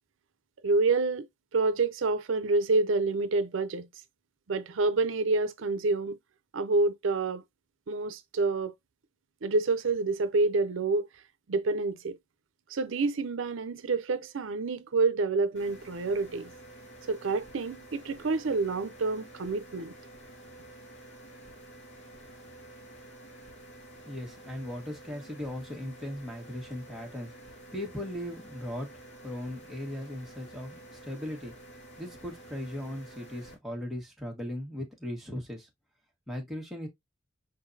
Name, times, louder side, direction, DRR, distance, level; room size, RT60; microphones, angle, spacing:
voice 1, 0.6-1.3 1.5-3.9 4.5-6.2 6.5-7.4 7.9-8.7 9.4-11.1 11.5-12.2 12.7-16.5 17.1-19.9, right 3 dB, 80° right, 0.5 m, -28 dB
sound 1, 15.6-33.5, right 1 dB, 75° left, 2.6 m, -50 dB
voice 2, 24.0-27.3 27.7-28.9 29.2-31.5 32.0-35.7 36.3-36.9, left 1 dB, ahead, 1.4 m, -38 dB
5.2 x 3.8 x 2.6 m
head